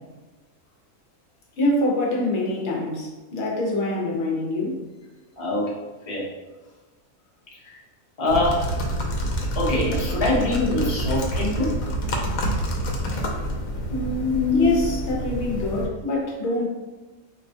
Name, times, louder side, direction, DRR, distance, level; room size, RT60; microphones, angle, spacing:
voice 1, 1.6-4.8 13.9-16.7, left 2 dB, 60° left, -2 dB, 1.0 m, -25 dB
voice 2, 5.4-5.8 6.1-6.3 7.5-7.8 8.2-8.7 9.5-11.8 14.3-14.7, left 2 dB, 30° left, -5 dB, 0.8 m, -23 dB
sound 1, 8.3-15.9, equal, 85° left, 1.1 m, -27 dB
4.1 x 2.2 x 2.7 m, 1.2 s
omnidirectional pair, 1.5 m